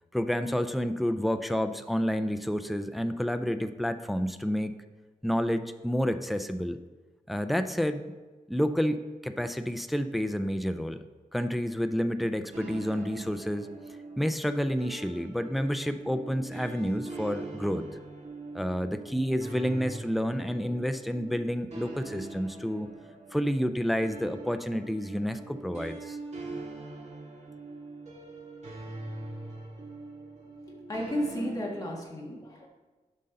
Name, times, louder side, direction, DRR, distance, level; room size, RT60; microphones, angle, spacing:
voice 1, 0.1-4.8 5.2-6.8 7.3-8.0 8.5-11.0 11.3-13.7 14.2-17.9 18.5-22.9 23.3-26.2, equal, ahead, 9 dB, 0.3 m, -29 dB
sound 1, 12.5-32.0, right 3 dB, 50° right, 1.8 m, -43 dB
voice 2, 30.7-32.7, equal, 25° left, -2 dB, 1.5 m, -33 dB
11.5 x 5.4 x 3.8 m, 1.3 s
wide cardioid pair, 170°, 14 cm